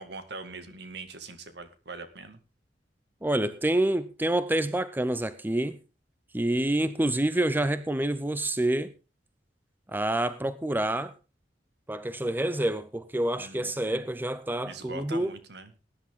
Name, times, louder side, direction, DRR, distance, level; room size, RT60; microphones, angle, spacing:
voice 1, 0.0-2.4 13.4-14.1 14.6-15.7, right 3 dB, 65° right, 2.0 m, -42 dB
voice 2, 3.2-5.8 6.3-8.9 9.9-11.1 11.9-15.3, right 1 dB, 10° right, 0.6 m, -27 dB
19.0 x 10.0 x 3.7 m
head